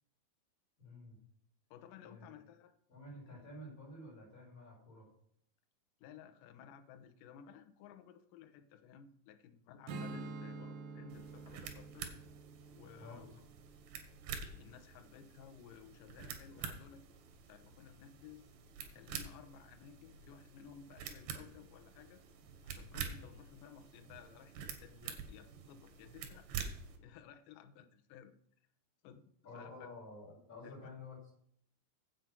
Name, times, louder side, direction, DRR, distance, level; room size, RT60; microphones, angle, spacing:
voice 1, 0.8-1.2 2.0-2.4 2.9-5.1 13.0-13.4 29.4-31.3, left 2 dB, 20° left, -4 dB, 4.5 m, -51 dB
voice 2, 1.7-2.7 3.3-3.4 6.0-12.1 12.8-13.3 14.5-17.0 17.5-18.5 18.9-22.2 22.6-26.5 27.0-28.4 29.0-29.9 30.6-30.8, left 8 dB, 70° left, 6 dB, 2.2 m, -56 dB
Strum, 9.9-15.2, right 3 dB, 70° right, 1.9 m, -49 dB
sound 1, 11.1-27.0, right 7 dB, 85° right, 3.4 m, -48 dB
8.1 x 7.9 x 5.9 m, 0.69 s
omnidirectional pair, 4.7 m